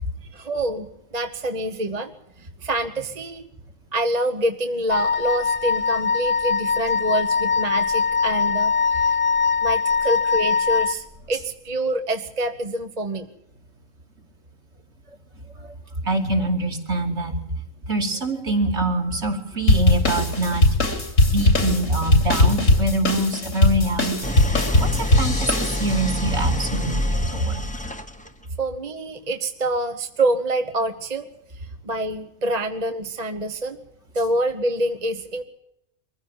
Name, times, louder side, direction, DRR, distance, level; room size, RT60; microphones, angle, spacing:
voice 1, 0.3-0.9 1.1-2.1 2.6-3.5 3.9-9.2 9.6-13.3 28.6-31.3 31.8-33.8 34.1-35.4, right 1 dB, 30° right, 6 dB, 1.2 m, -26 dB
Wind instrument woodwind instrument, 4.9-11.0, left 5 dB, 25° left, 1.1 m, -22 dB
voice 2, 16.0-17.3 17.9-20.7 21.3-27.7, right 2 dB, 55° right, 2 dB, 3.1 m, -24 dB
sound 1, 19.7-26.2, left 2 dB, 80° left, 3.5 m, -19 dB
Idling, 24.2-28.4, left 1 dB, 5° left, 1.1 m, -27 dB
23.5 x 15.0 x 7.4 m, 0.82 s
omnidirectional pair, 1.4 m